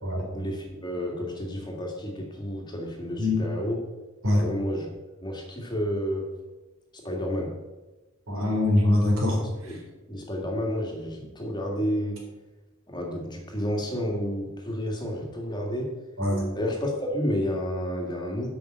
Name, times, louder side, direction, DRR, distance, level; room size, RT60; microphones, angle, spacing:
voice 1, 0.3-3.8 4.3-4.9 5.2-6.3 7.0-7.5 9.6-9.8 10.1-12.2 12.9-15.9 16.6-18.5, equal, 20° left, 0 dB, 1.9 m, -30 dB
voice 2, 8.3-9.4 9.7-9.8 16.2-16.4, left 1 dB, 70° right, -2 dB, 3.9 m, -23 dB
8.4 x 6.1 x 7.9 m, 1.1 s
head